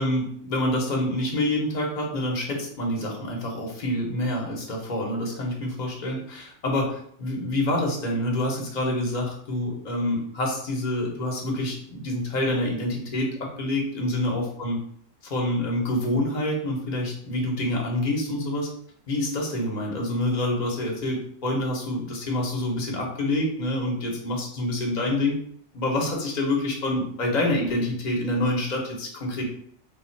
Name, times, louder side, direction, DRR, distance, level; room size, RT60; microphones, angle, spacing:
voice 1, 0.0-14.8 15.2-18.7 19.1-25.3 25.7-29.4, left 1 dB, 40° left, -1 dB, 1.0 m, -27 dB
3.4 x 2.4 x 4.4 m, 0.63 s
omnidirectional pair, 1.4 m